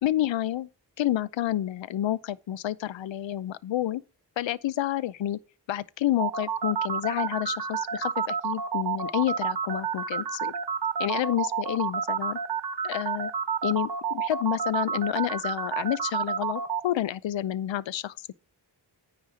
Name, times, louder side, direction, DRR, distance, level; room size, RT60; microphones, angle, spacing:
voice 1, 0.0-0.7 1.0-4.0 4.4-5.4 5.7-10.5 11.0-12.4 12.8-13.3 13.6-18.3, left 12 dB, 80° left, 0.6 m, -29 dB
sound 1, 6.2-16.8, right 6 dB, 60° right, 1.2 m, -29 dB
9.7 x 3.4 x 6.7 m
cardioid pair, 45°, 44 cm